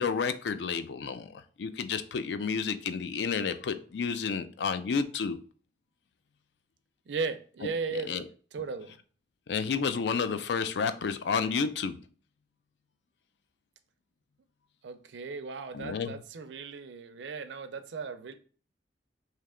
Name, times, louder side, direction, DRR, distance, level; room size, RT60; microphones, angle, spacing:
voice 1, 0.0-5.4 8.0-8.2 9.5-12.0 15.7-16.1, left 5 dB, 70° left, 0.4 m, -31 dB
voice 2, 7.1-8.2 8.5-9.0 14.8-18.3, right 4 dB, 80° right, 0.4 m, -36 dB
3.2 x 2.8 x 3.6 m
head